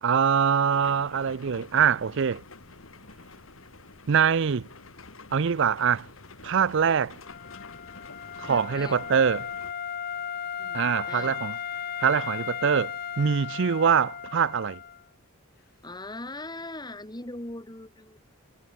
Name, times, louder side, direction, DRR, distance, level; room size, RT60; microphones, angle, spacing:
voice 1, 0.0-2.4 4.1-4.7 5.3-6.1 6.4-7.2 8.4-9.5 10.7-11.6 12.0-14.8, right 7 dB, 60° right, 0.5 m, -24 dB
sound 1, 0.7-9.7, left 3 dB, 75° left, 2.5 m, -48 dB
Wind instrument woodwind instrument, 7.2-15.0, left 8 dB, 45° left, 0.6 m, -36 dB
voice 2, 8.4-9.0 10.6-11.3 15.8-18.2, left 2 dB, 20° left, 2.3 m, -40 dB
head